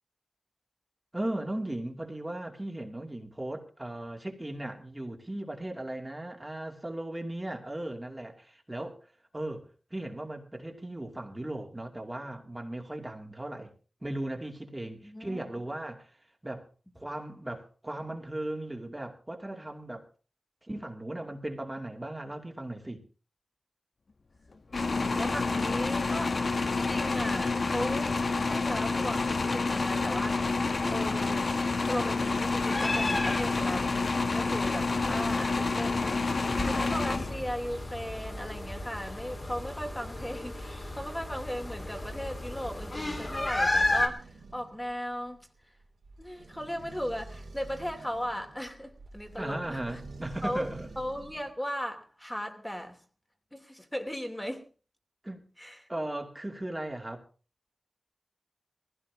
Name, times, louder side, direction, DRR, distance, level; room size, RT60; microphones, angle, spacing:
voice 1, 1.1-13.7 14.0-16.2 16.4-16.7 17.0-20.1 20.6-23.0 49.4-50.9 55.2-55.5 55.9-57.2, right 1 dB, 20° right, 2.6 m, -37 dB
voice 2, 15.0-15.4 24.9-30.6 30.9-34.0 34.3-36.2 36.6-45.4 46.2-50.0 50.4-50.7 51.0-53.0 53.5-54.6 55.6-55.9, equal, 10° left, 2.9 m, -37 dB
sound 1, 24.7-37.7, left 3 dB, 60° left, 1.3 m, -29 dB
sound 2, 32.6-44.1, left 2 dB, 40° left, 3.6 m, -34 dB
sound 3, 42.0-51.5, right 3 dB, 80° right, 3.3 m, -49 dB
20.5 x 16.0 x 3.6 m
cardioid pair, 55°, 0 cm